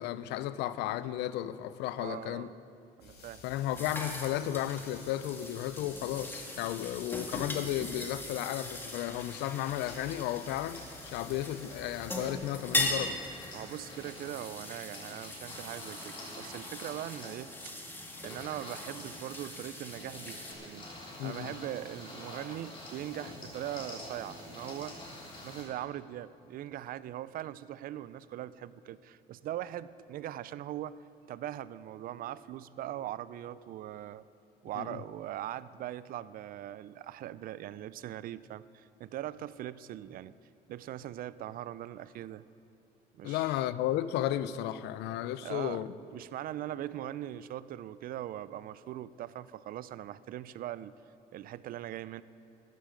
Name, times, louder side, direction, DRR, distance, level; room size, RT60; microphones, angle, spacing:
voice 1, 0.0-2.5 3.4-13.2 21.2-21.5 34.8-35.0 43.2-45.9, left 12 dB, 85° left, 0.4 m, -34 dB
voice 2, 2.0-2.5 3.0-3.4 13.5-17.7 18.2-20.9 21.2-25.0 25.4-31.0 31.3-34.2 34.6-40.3 40.7-42.4 43.1-43.6 45.4-45.8 46.1-50.9 51.3-52.2, right 12 dB, 60° right, 0.4 m, -41 dB
sound 1, 3.0-12.3, left 4 dB, 70° left, 2.4 m, -52 dB
sound 2, 3.8-20.5, left 1 dB, 10° left, 1.6 m, -40 dB
sound 3, 9.2-25.6, left 1 dB, 30° left, 3.3 m, -48 dB
13.0 x 10.0 x 5.2 m
cardioid pair, 110°, 17 cm